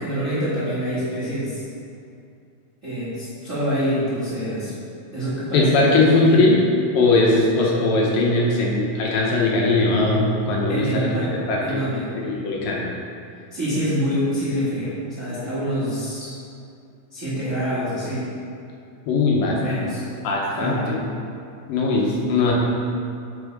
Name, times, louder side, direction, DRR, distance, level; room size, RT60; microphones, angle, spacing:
voice 1, 0.0-1.6 2.8-4.7 5.1-6.5 10.7-11.3 11.6-12.1 13.5-16.4 17.1-18.3 19.6-20.1 20.5-20.9, equal, 35° right, -12 dB, 1.3 m, -26 dB
voice 2, 5.5-6.6 6.9-11.1 11.5-11.8 12.2-12.8 19.1-19.9 20.2-21.0 21.7-22.5, left 3 dB, 80° left, -3 dB, 2.6 m, -19 dB
6.9 x 5.5 x 5.2 m, 2.5 s
omnidirectional pair, 4.0 m